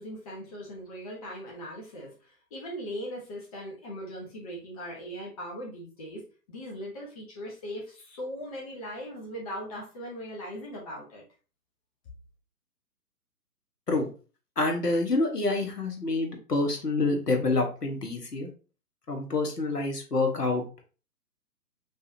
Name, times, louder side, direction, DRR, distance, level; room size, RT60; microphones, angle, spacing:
voice 1, 0.0-2.1 2.5-6.2 6.5-11.2, equal, 20° left, -3 dB, 1.1 m, -39 dB
voice 2, 14.6-18.5 19.1-20.6, left 3 dB, 75° left, 2 dB, 1.6 m, -27 dB
5.4 x 3.3 x 2.8 m, 0.35 s
figure-of-eight pair, 135°, 48 cm